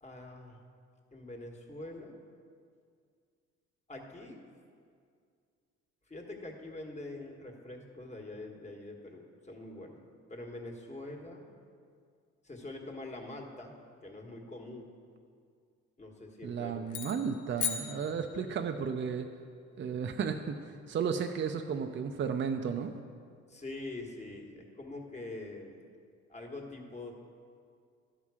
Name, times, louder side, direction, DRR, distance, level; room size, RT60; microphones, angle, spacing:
voice 1, 0.0-0.6 1.1-2.1 3.9-4.4 6.1-10.0 10.3-11.5 12.4-13.7 14.0-14.9 16.0-17.0 18.3-18.6 23.5-25.8 26.3-27.1, left 2 dB, 25° left, 2 dB, 1.4 m, -44 dB
voice 2, 16.4-19.3 19.8-23.0, right 6 dB, 40° right, 5 dB, 0.5 m, -34 dB
sound 1, 16.9-18.8, left 8 dB, 75° left, 0.8 m, -38 dB
12.0 x 5.7 x 4.8 m, 2.2 s
cardioid pair, 90°, 30 cm